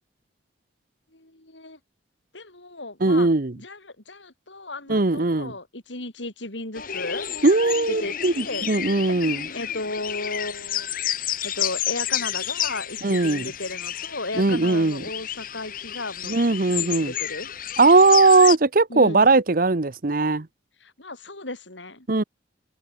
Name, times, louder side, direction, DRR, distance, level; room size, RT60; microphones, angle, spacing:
voice 1, 1.1-1.8 2.3-3.3 3.6-7.3 7.9-9.1 9.5-10.9 11.4-16.5 16.8-17.5 18.9-19.3 20.8-22.1, left 2 dB, 90° left, 6.0 m, -35 dB
voice 2, 3.0-3.5 4.9-5.5 7.4-9.5 13.0-13.5 14.4-15.0 16.3-17.1 17.8-20.5 22.1-22.2, right 3 dB, 50° right, 0.9 m, -19 dB
sound 1, 6.7-18.6, left 10 dB, 50° left, 2.0 m, -31 dB
head